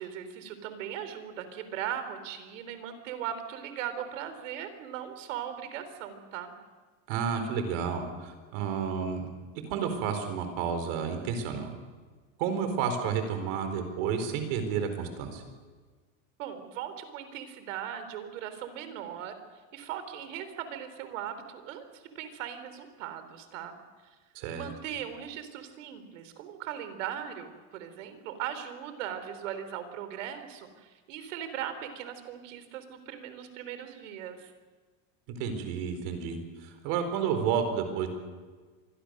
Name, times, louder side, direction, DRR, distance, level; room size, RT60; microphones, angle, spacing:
voice 1, 0.0-6.5 16.4-19.4 19.7-23.8 24.6-34.5, right 10 dB, 85° right, 10 dB, 3.7 m, -39 dB
voice 2, 7.1-9.3 9.6-11.7 12.4-15.4 24.3-24.6 35.4-38.1, right 7 dB, 55° right, 7 dB, 4.3 m, -31 dB
26.0 x 22.0 x 6.6 m, 1.4 s
supercardioid pair, 175°, 37 cm